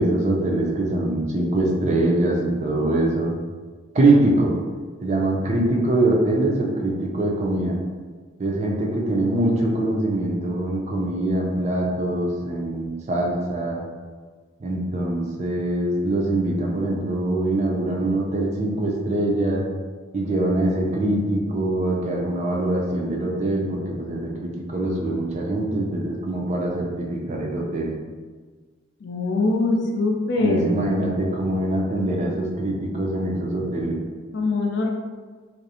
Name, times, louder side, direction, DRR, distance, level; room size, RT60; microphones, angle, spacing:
voice 1, 0.0-3.3 3.9-4.5 5.0-7.7 8.4-13.8 14.6-19.6 20.1-27.9 30.4-34.0, right 1 dB, 35° right, -1 dB, 0.4 m, -23 dB
voice 2, 29.0-30.8 34.3-34.9, left 2 dB, 60° left, 1 dB, 0.4 m, -22 dB
2.4 x 2.0 x 2.7 m, 1.4 s
head